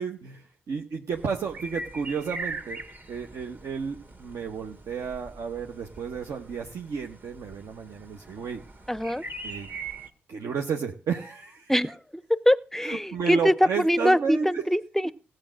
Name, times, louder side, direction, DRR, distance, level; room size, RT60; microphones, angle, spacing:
voice 1, 0.0-2.8 3.1-8.6 9.4-9.7 10.3-11.7 12.8-14.7, right 6 dB, 60° right, 1.0 m, -32 dB
sound 1, 1.1-10.1, right 3 dB, 35° right, 1.9 m, -41 dB
voice 2, 8.9-9.2 11.7-15.1, equal, 5° left, 0.6 m, -23 dB
16.0 x 7.7 x 6.3 m
hypercardioid pair, 40°, 6 cm